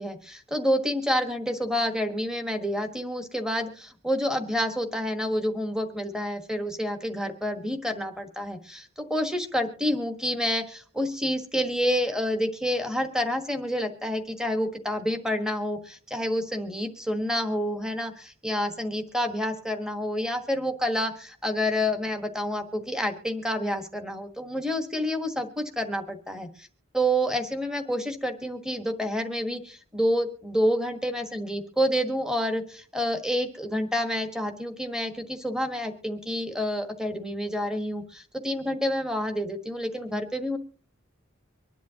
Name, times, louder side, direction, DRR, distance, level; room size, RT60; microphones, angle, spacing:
voice 1, 0.0-26.7 26.9-40.6, equal, 5° right, 6 dB, 1.3 m, -28 dB
24.5 x 10.5 x 2.8 m, 0.42 s
head